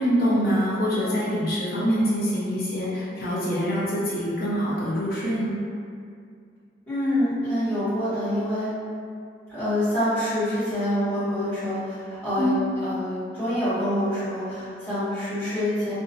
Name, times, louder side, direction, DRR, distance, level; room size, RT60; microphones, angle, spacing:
voice 1, 0.0-5.6 12.4-12.6, equal, 50° left, -8 dB, 0.7 m, -25 dB
voice 2, 6.9-8.7 9.5-12.5 12.8-15.9, left 1 dB, 10° left, -16 dB, 1.4 m, -26 dB
2.8 x 2.2 x 2.9 m, 2.3 s
head